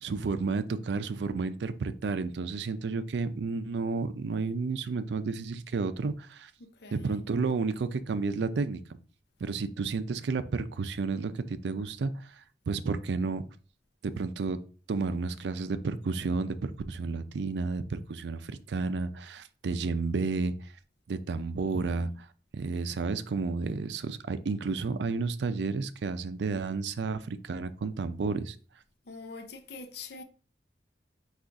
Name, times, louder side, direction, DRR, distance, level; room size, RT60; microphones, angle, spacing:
voice 1, 0.0-6.5 6.9-8.8 9.4-13.4 14.0-14.6 14.9-20.7 21.1-22.3 22.5-28.6, right 4 dB, 75° right, 0.4 m, -31 dB
voice 2, 6.6-7.2 21.7-22.1 29.1-30.2, left 4 dB, 65° left, 0.6 m, -45 dB
3.8 x 2.4 x 4.6 m
head